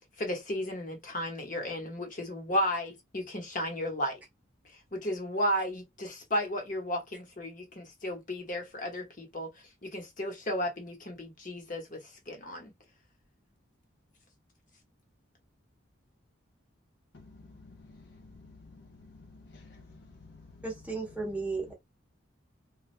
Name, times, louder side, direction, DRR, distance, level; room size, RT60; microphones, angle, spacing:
voice 1, 0.2-4.2 4.9-9.5 9.8-12.0 12.3-12.7, equal, 40° left, 0.9 m, -34 dB
voice 2, 17.1-20.6, left 3 dB, 55° left, 0.5 m, -53 dB
voice 3, 20.6-21.7, right 3 dB, 5° right, 0.7 m, -34 dB
3.2 x 2.3 x 2.5 m
head